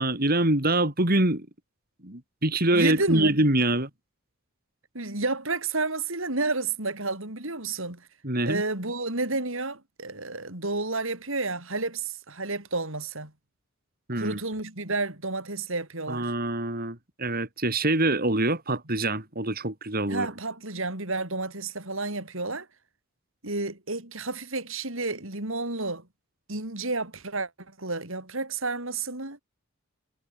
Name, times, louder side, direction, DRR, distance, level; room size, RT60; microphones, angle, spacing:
voice 1, 0.0-1.5 2.0-3.9 8.2-8.6 14.1-14.4 16.1-20.3, right 2 dB, 45° right, 5.7 m, -25 dB
voice 2, 2.7-3.4 4.9-8.1 8.5-13.3 14.1-16.3 20.1-22.7 23.4-26.1 26.5-29.4, right 3 dB, 65° right, 6.2 m, -31 dB
head